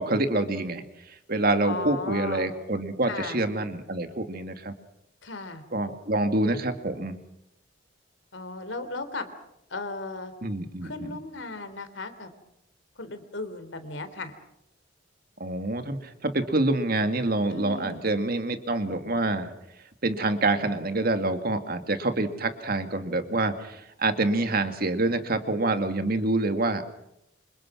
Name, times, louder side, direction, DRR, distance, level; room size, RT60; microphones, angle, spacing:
voice 1, 0.0-4.7 5.7-7.2 10.4-11.2 15.4-19.5 20.0-26.9, right 2 dB, 50° right, 8 dB, 2.2 m, -27 dB
voice 2, 1.6-2.5 3.1-3.4 5.2-5.6 8.3-9.3 9.7-10.3 10.8-12.3 13.0-14.3 17.5-18.1, left 3 dB, 70° left, 10 dB, 3.5 m, -36 dB
28.0 x 26.5 x 6.2 m, 0.83 s
head